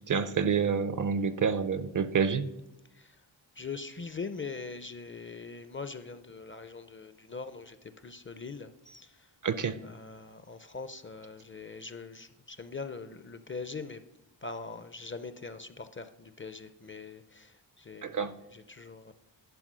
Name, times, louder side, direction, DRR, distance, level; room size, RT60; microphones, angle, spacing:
voice 1, 0.1-2.5 9.4-9.8 18.0-18.3, right 6 dB, 45° right, 13 dB, 0.5 m, -28 dB
voice 2, 3.6-7.8 8.0-9.3 9.8-14.0 14.4-19.1, left 4 dB, 30° left, 11 dB, 0.4 m, -42 dB
11.5 x 4.9 x 6.1 m, 0.91 s
wide cardioid pair, 130°, 46 cm